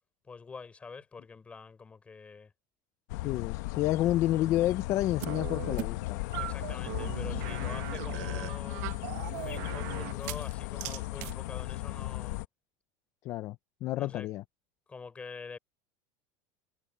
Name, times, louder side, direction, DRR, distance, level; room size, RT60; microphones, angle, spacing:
voice 1, 0.3-2.5 6.3-12.4 14.0-14.3 14.9-15.6, left 4 dB, 10° left, 4.2 m, -46 dB
sound 1, 3.1-12.5, left 18 dB, 60° left, 0.9 m, -36 dB
voice 2, 3.2-6.2 13.2-13.6 13.8-14.4, left 14 dB, 30° left, 0.4 m, -29 dB
sound 2, 5.2-5.9 6.3-10.5 10.8-11.3, right 19 dB, 60° right, 0.9 m, -39 dB
supercardioid pair, 180°, 10 cm